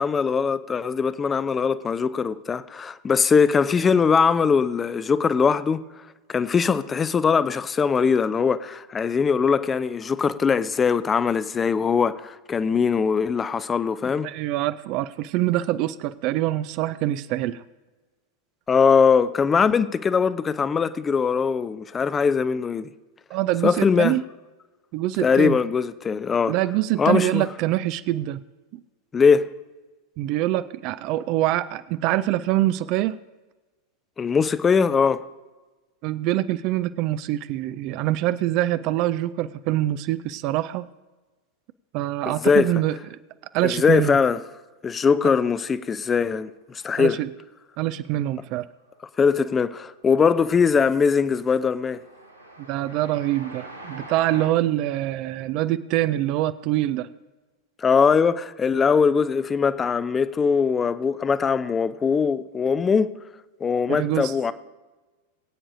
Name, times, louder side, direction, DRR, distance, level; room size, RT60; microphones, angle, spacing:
voice 1, 0.0-5.8 6.3-14.3 18.7-22.9 23.6-24.2 25.2-26.5 27.0-27.5 29.1-29.5 34.2-35.3 42.3-42.8 43.6-44.4 44.8-47.2 49.2-52.0 57.8-63.1 63.6-64.5, left 6 dB, 20° left, 0.5 m, -21 dB
voice 2, 14.2-17.6 23.3-24.2 24.9-25.6 26.5-28.4 28.7-28.8 30.2-33.2 36.0-40.8 41.9-43.0 43.5-44.2 47.0-47.3 47.8-48.7 52.7-57.1 63.9-64.3, right 14 dB, 40° right, 0.4 m, -24 dB
Train, 48.8-49.3 49.6-54.5, right 1 dB, 90° right, 1.4 m, -44 dB
23.0 x 8.6 x 2.7 m
figure-of-eight pair, 90°, 0 cm